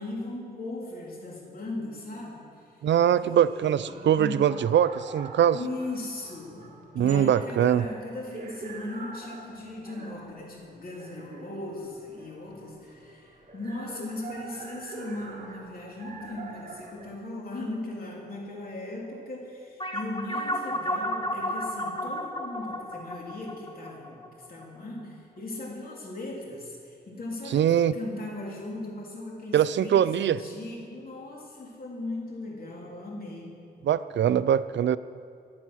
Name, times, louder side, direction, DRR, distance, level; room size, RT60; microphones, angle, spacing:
voice 1, 0.0-2.8 3.2-4.5 5.5-27.6 27.9-33.6, left 2 dB, 55° left, -2 dB, 3.4 m, -38 dB
voice 2, 2.8-5.6 6.9-7.8 27.5-27.9 29.5-30.4 33.8-35.0, right 10 dB, 80° right, 15 dB, 0.4 m, -22 dB
sound 1, 3.9-17.1, right 3 dB, 45° right, 2.0 m, -45 dB
sound 2, 19.8-24.6, equal, 25° left, 1.3 m, -32 dB
14.5 x 10.5 x 6.3 m, 2.3 s
cardioid pair, 80°, 18 cm